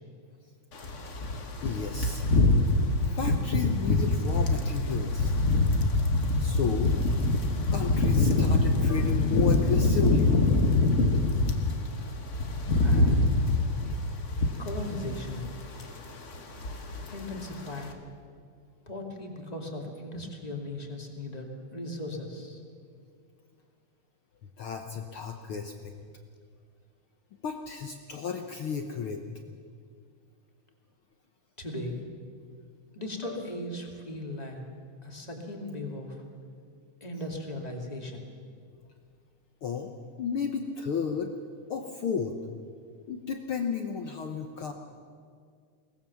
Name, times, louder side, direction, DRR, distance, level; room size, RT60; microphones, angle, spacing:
sound 1, 0.8-11.7 12.1-15.5 15.7-16.0 16.3-17.1 17.4-17.6, left 2 dB, 50° left, 0.8 m, -25 dB
voice 1, 1.6-2.3 3.1-5.3 6.4-6.9 7.7-10.4 24.6-25.9 27.4-29.2 33.2-33.4 39.6-39.9 40.2-41.3 41.7-42.4 43.1-44.7, left 6 dB, 65° left, 4 dB, 1.3 m, -33 dB
voice 2, 12.8-13.3 14.6-15.5 17.1-17.9 18.9-22.6 31.6-32.0 32.9-34.6 35.0-36.2 37.0-38.2, left 1 dB, 15° left, 1 dB, 2.0 m, -37 dB
22.5 x 19.0 x 7.1 m, 2.2 s
omnidirectional pair, 3.6 m